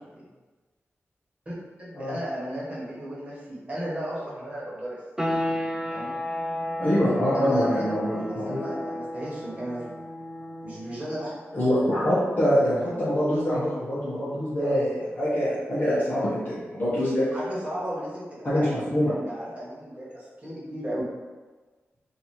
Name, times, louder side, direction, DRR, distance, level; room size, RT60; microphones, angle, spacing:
voice 1, 1.8-5.0 5.9-6.1 7.3-10.0 10.6-11.3 17.3-18.7 19.0-21.0, right 1 dB, 30° right, -8 dB, 1.5 m, -35 dB
sound 1, 5.2-15.7, left 1 dB, 10° right, 0.4 m, -35 dB
voice 2, 6.8-8.6 11.5-17.2 18.4-19.1, equal, 40° left, -11 dB, 1.2 m, -24 dB
3.2 x 2.8 x 4.3 m, 1.3 s
wide cardioid pair, 120°, 5 cm